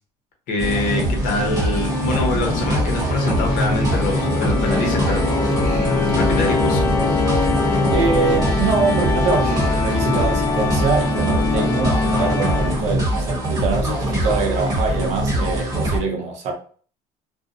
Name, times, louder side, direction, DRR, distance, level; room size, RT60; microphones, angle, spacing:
voice 1, 0.5-5.3 6.1-6.9, left 3 dB, 75° left, 0.8 m, -24 dB
sound 1, 0.6-16.0, right 1 dB, 25° right, 0.9 m, -23 dB
Organ, 1.3-13.1, left 4 dB, 20° left, 0.3 m, -23 dB
sound 2, 3.0-10.6, right 1 dB, 80° right, 0.9 m, -35 dB
voice 2, 7.9-16.5, right 5 dB, 55° right, 0.6 m, -24 dB
2.5 x 2.0 x 2.6 m
cardioid pair, 160°, 14 cm